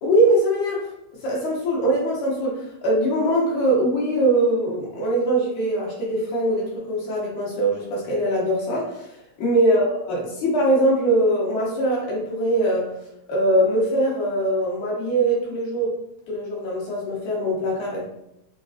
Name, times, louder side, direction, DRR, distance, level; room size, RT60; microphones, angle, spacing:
voice 1, 0.0-0.9 1.2-9.1 9.4-12.9 13.3-16.0 16.3-18.0, right 1 dB, 80° left, -4 dB, 2.5 m, -22 dB
5.2 x 2.4 x 2.4 m, 0.84 s
omnidirectional pair, 3.3 m